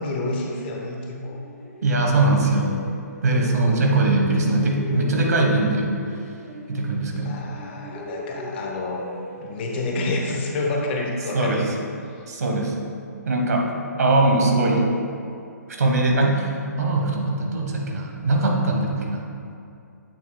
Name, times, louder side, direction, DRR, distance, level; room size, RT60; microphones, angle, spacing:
voice 1, 0.0-1.4 7.2-9.1 9.3-11.6, left 2 dB, 35° left, 1 dB, 0.9 m, -28 dB
sound 1, 1.3-4.0 4.3-7.3 7.5-11.1, left 1 dB, 55° left, 1.1 m, -39 dB
voice 2, 1.8-2.8 3.2-5.9 6.7-7.4 11.3-11.6 12.3-12.7 13.3-13.6 14.0-14.9 15.8-16.5 16.8-19.2, right 2 dB, 65° right, 1 dB, 1.1 m, -21 dB
8.3 x 6.8 x 2.2 m, 2.5 s
figure-of-eight pair, 130°, 9 cm